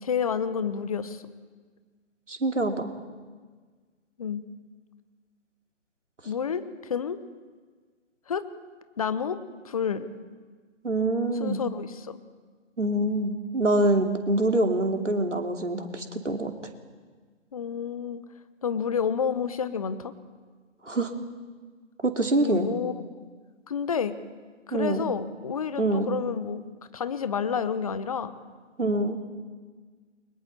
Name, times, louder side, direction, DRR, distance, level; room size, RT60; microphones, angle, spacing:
voice 1, 0.0-1.2 4.2-4.4 6.2-7.2 8.3-8.4 9.0-9.4 9.6-10.1 11.4-12.2 17.5-18.2 18.6-20.1 22.4-23.1 23.7-24.1 24.7-26.6 26.9-28.3, left 7 dB, 30° left, 13 dB, 1.0 m, -29 dB
voice 2, 2.3-2.9 10.8-11.6 12.8-16.5 20.8-21.1 22.0-22.7 24.7-25.0 25.8-26.2 28.8-29.2, right 2 dB, 75° right, 4 dB, 2.8 m, -25 dB
29.5 x 23.0 x 4.3 m, 1.5 s
figure-of-eight pair, 140°, 37 cm